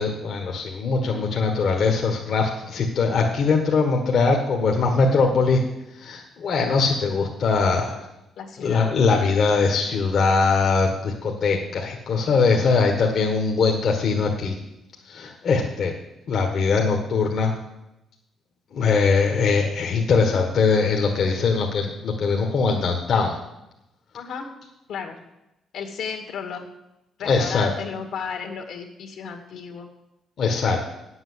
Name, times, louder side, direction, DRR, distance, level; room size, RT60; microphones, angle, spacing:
voice 1, 0.0-5.6 5.9-8.0 8.6-14.5 15.1-15.9 16.3-17.5 18.7-23.4 27.2-27.7 30.4-30.8, left 4 dB, 60° left, 1 dB, 1.5 m, -21 dB
voice 2, 8.4-8.9 24.1-24.5 24.9-25.2 25.7-26.7 27.2-29.9, left 6 dB, 75° left, 3 dB, 2.1 m, -33 dB
8.9 x 7.9 x 8.0 m, 0.91 s
cardioid pair, 90°, 0 cm